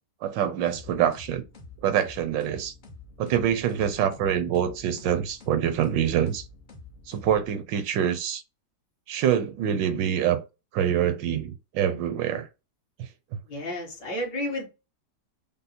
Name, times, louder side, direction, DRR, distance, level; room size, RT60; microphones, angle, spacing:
voice 1, 0.2-1.4 1.8-2.7 3.2-6.4 7.1-8.4 9.1-10.4 10.7-12.5 13.0-13.1, right 9 dB, 75° right, 1.2 m, -25 dB
sound 1, 0.7-7.8, left 3 dB, 50° left, 0.5 m, -48 dB
voice 2, 13.5-14.7, left 1 dB, 65° left, 2.1 m, -31 dB
5.3 x 2.0 x 4.1 m
omnidirectional pair, 2.1 m